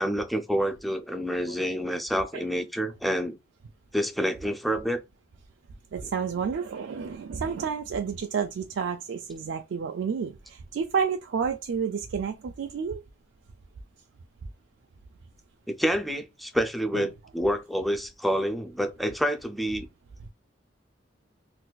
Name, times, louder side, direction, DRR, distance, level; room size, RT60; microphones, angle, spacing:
voice 1, 0.0-3.4 3.9-5.0 15.7-19.9, equal, ahead, 0.3 m, -28 dB
voice 2, 5.9-13.0 16.9-17.1, right 6 dB, 85° right, 0.3 m, -30 dB
3.9 x 2.5 x 2.2 m
head